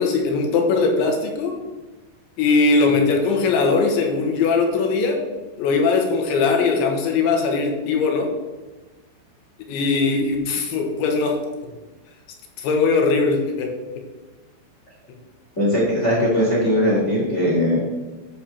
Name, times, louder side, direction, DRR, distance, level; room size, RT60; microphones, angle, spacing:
voice 1, 0.0-1.6 2.4-5.2 5.6-8.3 9.7-11.4 12.6-13.7, left 4 dB, 75° left, 2 dB, 3.5 m, -20 dB
voice 2, 15.6-17.8, equal, 25° left, -6 dB, 1.6 m, -19 dB
10.5 x 4.4 x 7.2 m, 1.2 s
omnidirectional pair, 5.6 m